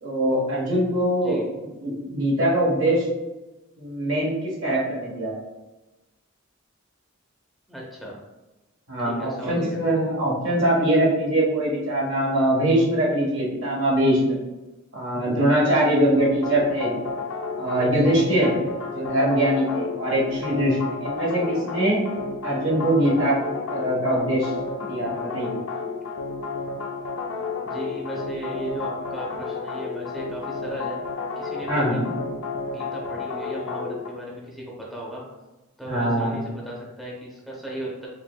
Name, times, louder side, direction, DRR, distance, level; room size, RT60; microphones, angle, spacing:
voice 1, 0.0-1.4 1.8-3.0 3.8-4.3 4.6-5.4 8.9-14.4 14.9-16.9 17.6-18.5 18.9-22.0 22.4-23.4 23.7-24.5 24.9-25.6 31.7-32.1 35.8-36.4, right 1 dB, 65° right, -4 dB, 1.2 m, -22 dB
voice 2, 1.2-1.5 7.7-8.1 9.0-9.8 27.6-31.0 31.4-32.0 32.7-35.2 35.8-38.1, right 1 dB, ahead, -4 dB, 0.7 m, -36 dB
sound 1, 16.2-34.1, left 4 dB, 70° left, 0.4 m, -31 dB
4.6 x 3.2 x 2.2 m, 1.1 s
head